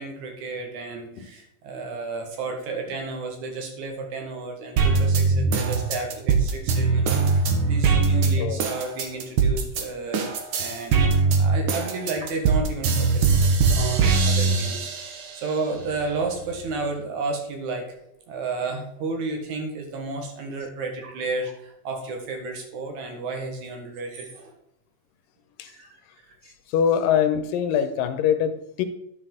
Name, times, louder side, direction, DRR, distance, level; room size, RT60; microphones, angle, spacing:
voice 1, 0.0-10.3 10.6-11.0 11.3-14.9 15.3-17.9 18.3-24.5 25.7-25.9 26.2-26.3, right 3 dB, 65° right, 3 dB, 2.6 m, -32 dB
sound 1, 4.8-9.8 10.1-15.3 15.8-16.8, right 4 dB, 85° right, 1.1 m, -21 dB
voice 2, 26.7-28.9, left 8 dB, 90° left, 10 dB, 2.4 m, -23 dB
9.8 x 6.3 x 3.8 m, 0.79 s
omnidirectional pair, 3.9 m